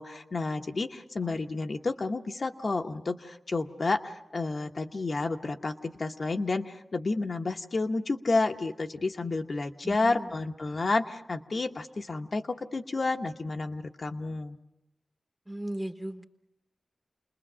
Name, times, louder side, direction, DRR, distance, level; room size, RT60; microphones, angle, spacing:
voice 1, 0.0-14.6, left 3 dB, 55° left, 4 dB, 0.9 m, -30 dB
voice 2, 9.8-10.4 10.7-10.9 15.5-16.3, right 1 dB, 5° right, 8 dB, 1.0 m, -38 dB
29.0 x 21.0 x 6.2 m, 0.91 s
wide cardioid pair, 110°, 0 cm